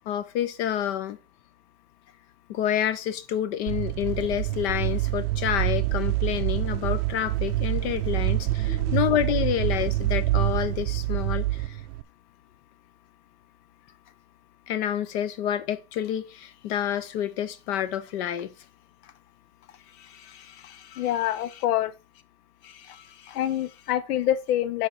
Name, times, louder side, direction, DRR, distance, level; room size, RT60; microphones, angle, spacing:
voice 1, 0.1-1.2 2.5-11.8 14.7-18.5 19.0-19.1 19.9-21.2 21.5-21.6 22.6-23.4, left 10 dB, 45° left, 0.6 m, -29 dB
sound 1, 3.7-12.0, right 16 dB, 85° right, 0.6 m, -26 dB
voice 2, 8.7-9.0 21.0-21.9 23.3-24.9, left 12 dB, 85° left, 0.7 m, -26 dB
6.5 x 4.8 x 5.5 m
supercardioid pair, 150°, 45 cm